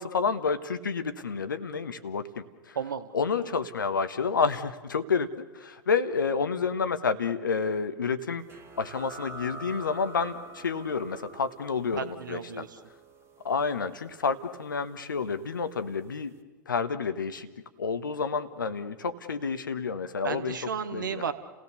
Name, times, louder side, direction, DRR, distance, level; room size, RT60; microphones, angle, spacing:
voice 1, 0.0-2.8 3.1-5.3 5.5-8.4 8.8-12.6 13.4-16.3 16.7-17.5 17.8-20.6 20.9-21.2, left 5 dB, 75° left, 11 dB, 1.2 m, -29 dB
voice 2, 2.7-3.1 12.0-12.8 20.2-21.3, right 7 dB, 75° right, 10 dB, 1.4 m, -33 dB
sound 1, 8.5-15.7, right 3 dB, 20° right, 1.7 m, -47 dB
30.0 x 17.0 x 6.8 m, 1.3 s
figure-of-eight pair, 95°, 11 cm